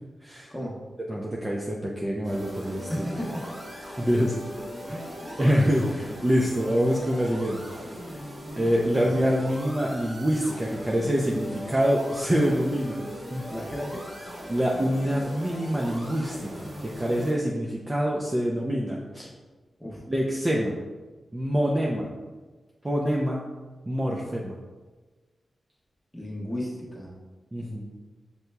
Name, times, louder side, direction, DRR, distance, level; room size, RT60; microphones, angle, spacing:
voice 1, 1.1-2.9 4.0-4.3 4.9-5.0 5.4-7.6 8.1-8.2 8.6-13.0 13.3-13.4 14.5-16.7 17.0-19.3 20.1-20.7 21.3-22.1 22.8-23.4 23.9-24.5 27.5-27.9, equal, 25° right, -2 dB, 0.4 m, -25 dB
sound 1, 2.2-17.3, equal, 50° right, 1.3 m, -39 dB
voice 2, 2.9-3.6 5.2-5.4 8.6-8.7 9.0-9.5 13.5-14.1 19.8-20.0 26.1-27.1 27.6-27.7, equal, ahead, -4 dB, 1.1 m, -35 dB
6.6 x 2.8 x 2.2 m, 1.3 s
wide cardioid pair, 90°, 0 cm